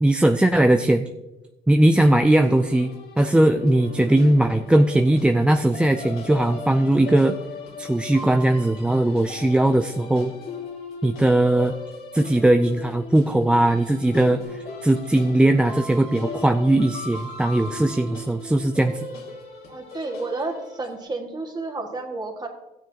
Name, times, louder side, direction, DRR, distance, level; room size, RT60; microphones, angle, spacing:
voice 1, 0.0-1.0 1.7-2.9 3.2-7.3 7.8-10.3 11.0-11.8 12.1-19.0, right 1 dB, 5° right, 5 dB, 0.4 m, -19 dB
sound 1, 2.3-21.0, left 3 dB, 70° left, 2.4 m, -37 dB
voice 2, 19.7-22.5, right 3 dB, 25° right, 2 dB, 1.9 m, -31 dB
13.5 x 9.1 x 2.8 m, 1.0 s
cardioid pair, 110°, 17 cm